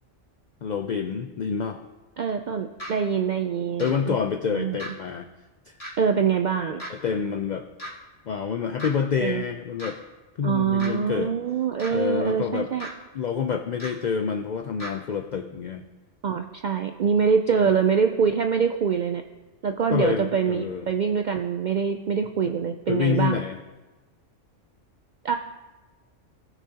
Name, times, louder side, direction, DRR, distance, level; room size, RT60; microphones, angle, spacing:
voice 1, 0.6-1.8 3.8-5.3 5.7-5.8 6.9-7.7 8.3-10.0 10.4-11.3 11.9-12.7 13.1-15.8 17.5-17.7 19.9-20.9 22.9-23.6, left 6 dB, 75° left, 7 dB, 0.4 m, -27 dB
voice 2, 2.2-4.2 4.5-4.8 6.0-6.8 9.2-9.4 10.4-12.9 16.2-19.2 19.6-23.4 25.2-25.4, right 6 dB, 70° right, 6 dB, 0.4 m, -24 dB
sound 1, 2.8-2.9 3.8-3.9 4.8-4.9 5.8-5.9 6.8-6.9 7.8-7.9 8.8-8.9 9.8-9.9 10.8-10.9 11.8-11.9 12.8-12.9 13.8-13.9 14.8-14.9, equal, 30° left, 2.1 m, -35 dB
18.0 x 6.1 x 2.8 m, 1.2 s
omnidirectional pair, 1.3 m